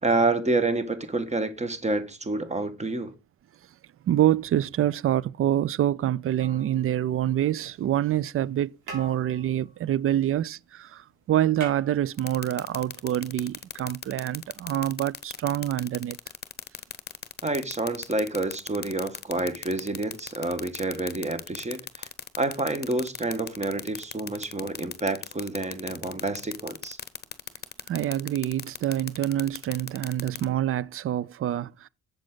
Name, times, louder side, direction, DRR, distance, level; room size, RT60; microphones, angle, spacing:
voice 1, 0.0-3.1 17.4-22.1 22.4-27.0, right 2 dB, 20° right, 1.5 m, -28 dB
voice 2, 4.0-16.2 27.9-31.9, right 12 dB, 45° right, 0.5 m, -26 dB
sound 1, 6.4-7.5 8.4-8.6 8.8-10.7 11.0-11.1 11.3-12.7 13.9-14.0, right 3 dB, 85° right, 4.7 m, -44 dB
sound 2, 12.2-30.4, left 7 dB, 35° left, 0.9 m, -36 dB
7.7 x 7.4 x 3.9 m
cardioid pair, 90°, 30 cm